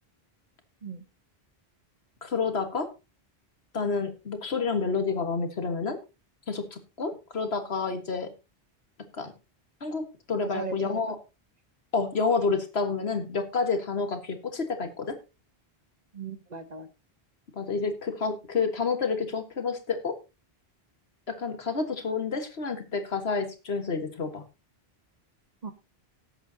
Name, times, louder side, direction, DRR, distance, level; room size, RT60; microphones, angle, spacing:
voice 1, 2.2-2.9 3.7-6.0 6.5-8.3 9.1-9.3 9.8-11.2 11.9-15.2 17.5-20.2 21.3-24.4, left 4 dB, 75° left, 7 dB, 1.8 m, -29 dB
voice 2, 10.4-11.0 16.1-16.9 25.6-25.7, right 5 dB, 45° right, 11 dB, 1.0 m, -38 dB
18.0 x 8.0 x 2.8 m, 0.28 s
omnidirectional pair, 1.1 m